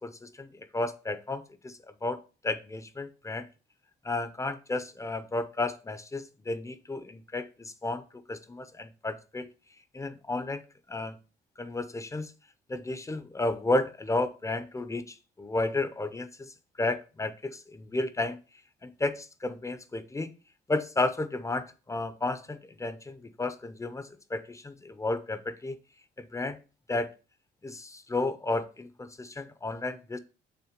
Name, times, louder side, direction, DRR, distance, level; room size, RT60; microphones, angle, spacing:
voice 1, 0.0-3.5 4.0-9.5 9.9-10.6 10.9-11.2 11.6-12.3 12.7-18.4 18.8-20.3 20.7-25.8 26.2-26.6 26.9-27.1 27.6-30.2, left 2 dB, 15° left, 0.6 m, -33 dB
5.8 x 3.4 x 5.0 m
cardioid pair, 90°, 20 cm